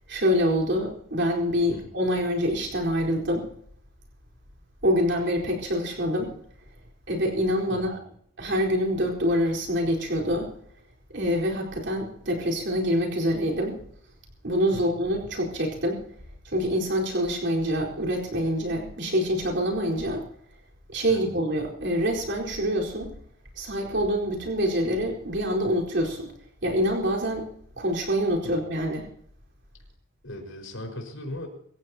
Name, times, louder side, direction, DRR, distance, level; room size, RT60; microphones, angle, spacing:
voice 1, 0.1-3.5 4.8-6.3 7.1-8.0 8.4-10.5 11.1-13.8 14.4-16.0 16.4-20.2 20.9-23.1 23.6-26.3 26.6-27.5 27.8-29.1, equal, 55° right, -1 dB, 4.4 m, -26 dB
voice 2, 7.7-8.0 14.7-15.0 21.1-21.3 28.4-28.6 30.2-31.5, left 1 dB, 65° left, 2 dB, 5.1 m, -38 dB
25.0 x 15.0 x 2.9 m, 0.66 s
head